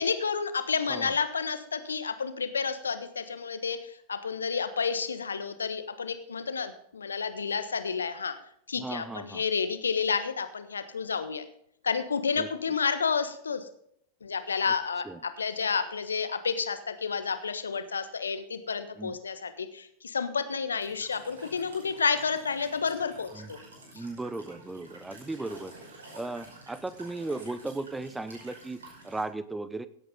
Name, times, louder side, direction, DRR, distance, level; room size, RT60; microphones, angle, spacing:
voice 1, 0.0-8.3 8.7-11.4 11.8-13.7 14.2-23.6 23.9-24.0, left 5 dB, 70° left, 10 dB, 1.3 m, -30 dB
voice 2, 8.8-9.4 12.4-12.5 15.0-15.2 19.0-19.1 23.3-23.5 23.9-25.7 26.1-28.8 29.0-29.9, right 2 dB, 5° right, 14 dB, 0.8 m, -36 dB
Walk footsteps / Chirp tweet / Stream, 20.7-29.2, right 2 dB, 70° right, 5.5 m, -50 dB
17.0 x 8.4 x 3.9 m, 0.71 s
figure-of-eight pair, 90°, 0 cm